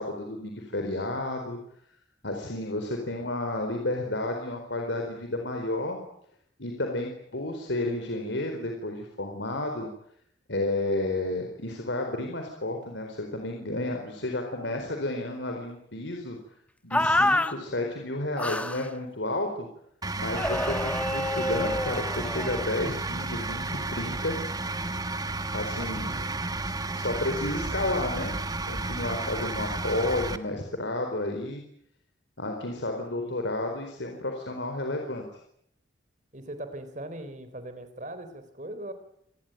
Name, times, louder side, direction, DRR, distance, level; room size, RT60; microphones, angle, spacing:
voice 1, 0.0-1.6 2.2-6.0 6.6-9.9 10.5-16.4 16.8-19.7 20.2-24.4 25.5-26.1 26.9-28.3 28.6-31.6 32.4-35.2, left 2 dB, 75° left, 3 dB, 4.4 m, -31 dB
sound 1, 16.9-17.5 18.4-18.9 20.4-22.7, left 1 dB, 5° left, 1.1 m, -27 dB
sound 2, 20.0-30.4, right 2 dB, 20° right, 1.4 m, -32 dB
voice 2, 25.8-26.4 33.2-33.4 36.3-38.9, right 1 dB, 40° right, 10 dB, 4.0 m, -40 dB
27.5 x 20.0 x 9.3 m, 0.72 s
head